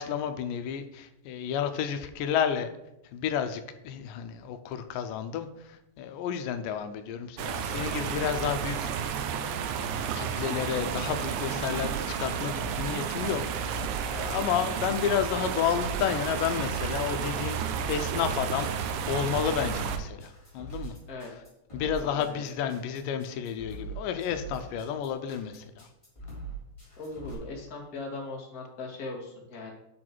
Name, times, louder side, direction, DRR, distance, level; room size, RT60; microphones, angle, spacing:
voice 1, 0.0-2.7 3.1-5.5 6.0-9.2 10.2-13.7 14.0-17.6 17.9-20.9 21.7-25.8, left 8 dB, 90° left, 9 dB, 2.3 m, -31 dB
sound 1, 7.4-20.0, right 7 dB, 80° right, 1.9 m, -32 dB
sound 2, 11.6-27.3, right 4 dB, 10° left, 3.2 m, -42 dB
voice 2, 21.8-22.8 27.0-29.7, left 3 dB, 35° left, -2 dB, 1.8 m, -40 dB
8.7 x 6.3 x 4.5 m, 0.88 s
omnidirectional pair, 3.8 m